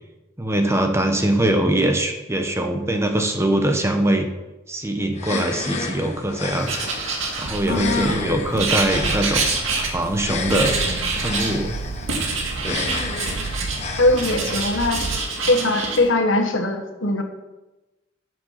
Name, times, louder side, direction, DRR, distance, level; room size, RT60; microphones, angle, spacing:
voice 1, 0.4-4.3 4.7-6.8 7.3-9.5 9.9-10.8 11.2-11.7 12.6-12.9, right 1 dB, 15° right, 4 dB, 1.0 m, -22 dB
sound 1, 5.1-15.1, left 4 dB, 35° left, 1.1 m, -33 dB
Writing, 6.6-8.0 8.6-10.2 10.5-11.6 12.1-13.8 14.1-16.0, right 4 dB, 90° right, 2.1 m, -26 dB
sound 2, 7.4-15.2, right 3 dB, 65° right, 0.6 m, -33 dB
voice 2, 7.7-8.3 14.0-15.2 15.5-17.2, left 2 dB, 80° left, 5 dB, 1.4 m, -21 dB
9.3 x 7.5 x 5.8 m, 1.0 s
head